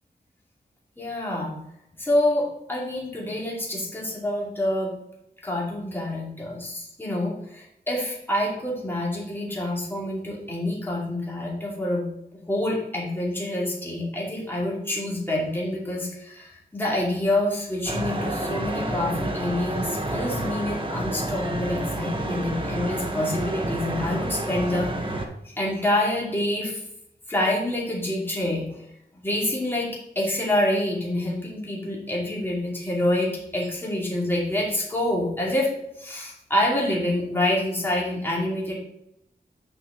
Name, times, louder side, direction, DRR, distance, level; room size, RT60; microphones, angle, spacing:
voice 1, 1.0-1.6 2.0-4.9 5.4-12.1 12.4-24.9 25.4-26.8 27.3-28.8 29.2-29.9 30.1-35.7 36.0-38.7, left 1 dB, 15° left, -5 dB, 2.7 m, -27 dB
sound 1, 17.9-25.3, right 1 dB, 30° right, 1.3 m, -29 dB
7.0 x 5.4 x 4.9 m, 0.77 s
wide cardioid pair, 100°, 17 cm